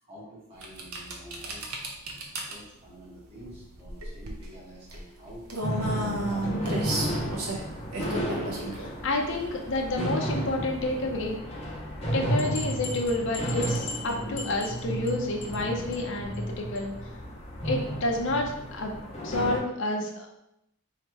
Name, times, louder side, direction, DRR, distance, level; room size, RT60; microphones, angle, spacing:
voice 1, 0.0-1.8 2.4-5.4 6.0-7.3, right 1 dB, 25° right, -8 dB, 1.4 m, -48 dB
sound 1, 0.6-11.4, right 1 dB, 85° right, 0.8 m, -35 dB
sound 2, 5.6-19.6, right 1 dB, 30° left, 0.9 m, -33 dB
voice 2, 8.7-11.4 12.1-16.9 17.6-18.9 19.2-20.4, left 2 dB, 55° left, 1 dB, 0.6 m, -29 dB
sound 3, 12.4-15.1 15.4-15.7 15.9-16.0 16.3-16.4 16.8-16.9, left 3 dB, 75° left, 0.9 m, -39 dB
3.2 x 2.8 x 4.5 m, 0.82 s
head